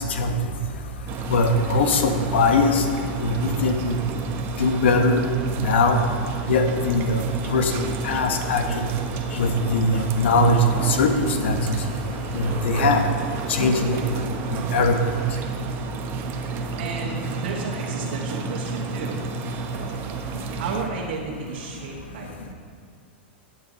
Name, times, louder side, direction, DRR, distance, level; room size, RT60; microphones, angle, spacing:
sound 1, 1.1-20.8, right 4 dB, 35° right, 1.0 m, -31 dB
voice 1, 1.3-2.8 3.2-4.0 4.6-5.2 5.6-6.0 6.5-7.2 7.5-8.9 9.4-10.6 10.9-11.6 12.3-13.0 13.5-14.0 14.7-15.0, left 3 dB, 80° left, 5 dB, 1.4 m, -21 dB
voice 2, 16.5-19.2 20.6-22.5, right 5 dB, 70° right, -4 dB, 1.7 m, -33 dB
13.5 x 9.5 x 4.1 m, 2.2 s
supercardioid pair, 135°, 6 cm